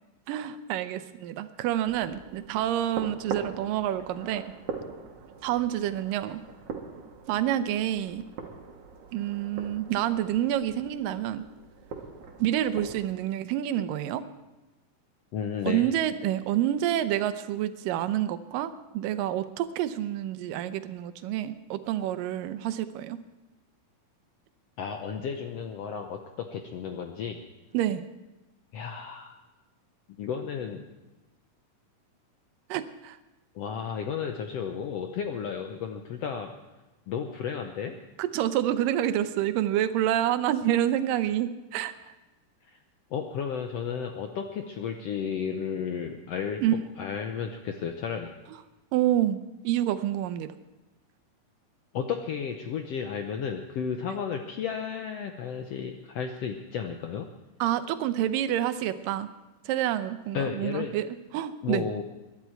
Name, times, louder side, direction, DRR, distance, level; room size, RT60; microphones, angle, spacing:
voice 1, 0.3-4.5 5.4-6.4 7.3-8.2 9.1-11.5 12.4-14.2 15.7-23.2 27.7-28.0 32.7-33.2 38.2-41.9 46.6-46.7 48.9-49.4 49.6-50.5 57.6-59.3 59.7-61.1 61.3-61.9, right 12 dB, 85° right, 11 dB, 2.4 m, -28 dB
sound 1, 1.8-13.1, right 5 dB, 70° right, 2.8 m, -42 dB
voice 2, 15.3-15.9 24.8-27.4 28.7-29.3 30.2-30.8 33.5-36.5 37.1-37.9 42.7-42.8 43.1-46.6 47.0-48.3 51.9-57.3 60.3-60.9 61.6-62.0, left 7 dB, 75° left, 5 dB, 1.5 m, -33 dB
22.0 x 11.5 x 4.5 m, 1.1 s
omnidirectional pair, 3.8 m